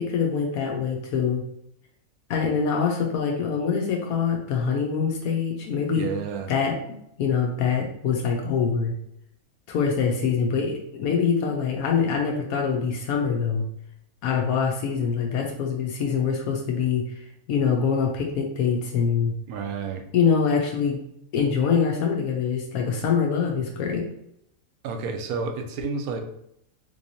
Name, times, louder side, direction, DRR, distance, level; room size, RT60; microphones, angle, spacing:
voice 1, 0.0-1.4 2.3-6.2 6.5-6.8 7.2-8.9 9.7-13.7 14.2-17.0 17.5-19.3 20.1-21.0 21.3-24.0, left 6 dB, 80° left, 1 dB, 1.1 m, -24 dB
voice 2, 5.9-6.5 19.5-20.1 24.8-26.2, right 5 dB, 85° right, 6 dB, 1.1 m, -30 dB
3.6 x 3.1 x 2.6 m, 0.75 s
omnidirectional pair, 1.5 m